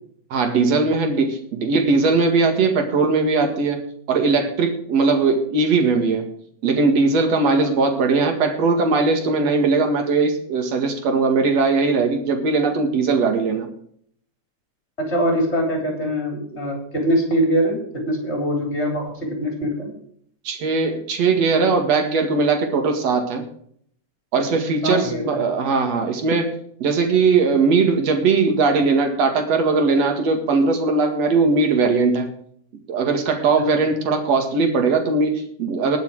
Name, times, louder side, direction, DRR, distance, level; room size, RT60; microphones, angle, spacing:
voice 1, 0.3-3.8 4.1-6.3 6.6-13.7 20.4-23.5 24.3-26.5 26.8-32.3 32.9-36.0, right 4 dB, 60° right, 5 dB, 3.0 m, -19 dB
voice 2, 15.0-19.9 24.8-25.4, equal, 20° left, 1 dB, 4.2 m, -23 dB
20.0 x 6.9 x 4.8 m, 0.64 s
omnidirectional pair, 3.5 m